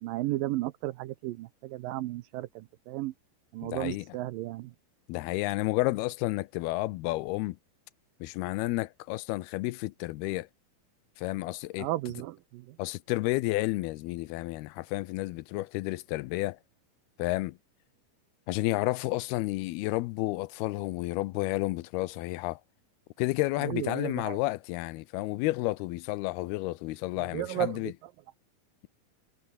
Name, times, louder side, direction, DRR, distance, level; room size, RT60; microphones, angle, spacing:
voice 1, 0.0-3.1 3.5-4.7 11.8-12.8 23.6-24.4 27.2-27.9, right 16 dB, 80° right, 2.2 m, -34 dB
voice 2, 3.6-4.1 5.1-7.6 8.2-10.5 11.2-11.9 12.8-16.6 17.2-17.6 18.5-22.6 23.2-27.9, left 20 dB, 85° left, 2.7 m, -31 dB
omnidirectional pair, 4.4 m